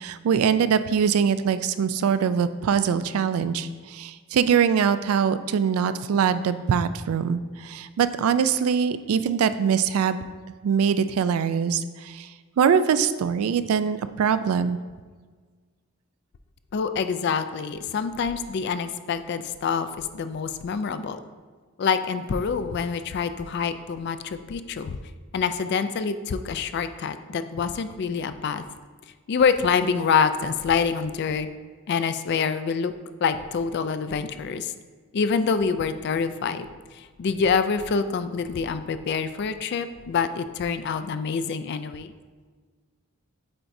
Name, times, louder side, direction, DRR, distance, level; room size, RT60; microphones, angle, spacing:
voice 1, 0.0-10.2 10.6-12.3 12.6-14.8, right 7 dB, 90° right, 12 dB, 0.3 m, -23 dB
voice 2, 16.7-21.2 21.8-25.0 25.3-28.6 29.3-31.5 31.9-32.9 33.2-34.7 35.1-36.7 36.9-42.1, left 5 dB, 55° left, 11 dB, 0.3 m, -26 dB
8.7 x 4.6 x 2.6 m, 1.5 s
head